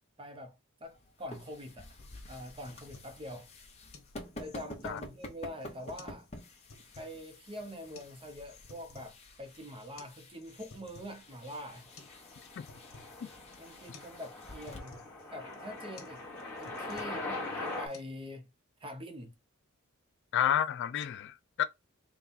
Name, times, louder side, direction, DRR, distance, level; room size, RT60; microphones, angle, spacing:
voice 1, 0.2-2.0 2.3-3.5 4.3-6.3 7.0-11.9 13.6-15.0 15.3-16.2 16.6-18.5 18.8-19.3, equal, 25° right, 0.7 m, -44 dB
sound 1, 0.8-14.8, left 1 dB, 30° left, 1.0 m, -50 dB
sound 2, 2.0-18.0, left 3 dB, 75° left, 1.2 m, -57 dB
sound 3, 11.7-17.9, left 2 dB, 10° left, 1.3 m, -42 dB
voice 2, 20.3-21.6, left 10 dB, 55° left, 0.3 m, -30 dB
4.1 x 2.3 x 3.8 m
head